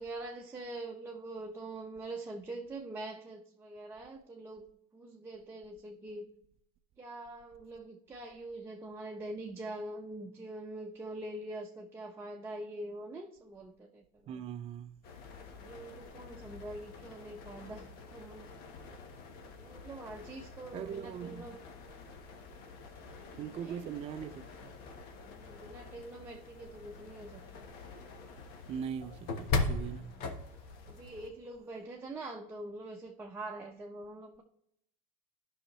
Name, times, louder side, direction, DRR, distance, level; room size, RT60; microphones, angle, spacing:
voice 1, 0.0-6.3 7.0-14.4 15.5-17.9 18.1-18.5 19.5-21.6 23.5-23.9 25.2-27.7 29.9-30.4 30.9-34.4, right 2 dB, 15° right, 0.8 m, -44 dB
voice 2, 14.3-15.0 20.7-21.4 23.3-24.8 28.7-30.1, right 8 dB, 35° right, 0.5 m, -41 dB
sound 1, 15.0-31.3, left 3 dB, 60° left, 1.3 m, -42 dB
13.0 x 5.7 x 3.1 m
supercardioid pair, 130°, 18 cm